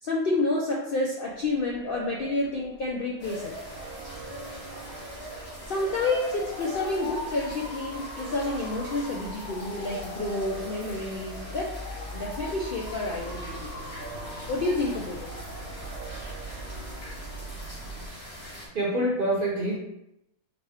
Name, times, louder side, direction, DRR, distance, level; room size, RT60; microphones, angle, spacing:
voice 1, 0.0-3.5 5.7-11.8 12.1-13.7 14.5-15.3, left 2 dB, 60° left, -2 dB, 0.5 m, -29 dB
Motor vehicle (road) / Siren, 1.3-18.1, left 1 dB, 80° left, 1.3 m, -41 dB
sound 1, 3.2-18.7, equal, 35° left, 1.6 m, -44 dB
sound 2, 3.6-17.5, right 3 dB, 80° right, 1.4 m, -45 dB
voice 2, 18.2-19.8, right 1 dB, 45° right, -4 dB, 0.8 m, -27 dB
4.7 x 2.2 x 3.5 m, 0.86 s
omnidirectional pair, 1.5 m